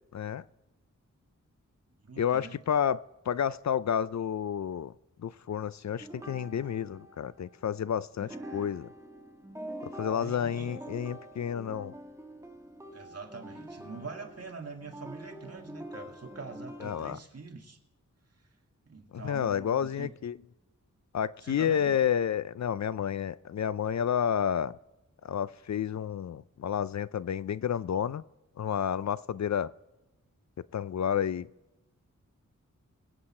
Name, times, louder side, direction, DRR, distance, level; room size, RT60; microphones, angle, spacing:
voice 1, 0.1-0.4 2.2-4.9 5.2-8.9 9.9-11.9 16.8-17.2 19.1-20.4 21.1-24.8 25.2-28.2 28.6-29.7 30.7-31.5, left 8 dB, 60° left, 0.5 m, -30 dB
voice 2, 2.0-2.6 6.1-6.3 8.2-8.7 10.1-10.7 12.9-17.8 18.9-20.1 21.4-22.0, right 4 dB, 50° right, 2.2 m, -44 dB
sound 1, 6.0-7.8 8.2-17.1, right 1 dB, 10° right, 1.6 m, -45 dB
23.5 x 8.3 x 4.3 m
wide cardioid pair, 80°, 31 cm